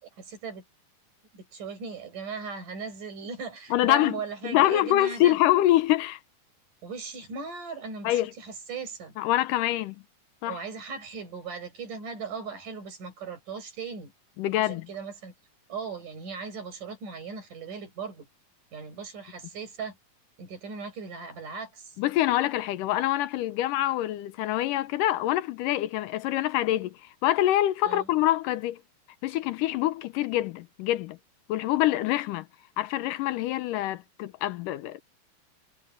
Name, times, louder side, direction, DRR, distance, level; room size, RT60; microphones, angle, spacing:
voice 1, 0.2-0.6 1.3-5.4 6.8-9.2 10.5-14.1 14.6-15.3 15.7-18.3 18.7-20.0 20.4-22.0 27.8-28.1, right 5 dB, 60° right, 8.6 m, -38 dB
voice 2, 3.7-4.2 4.4-6.2 8.0-8.3 9.2-10.0 10.4-10.6 14.4-14.9 22.0-28.8 29.2-31.2 31.5-32.5 32.8-35.0, left 14 dB, 80° left, 2.1 m, -25 dB
omnidirectional pair, 4.2 m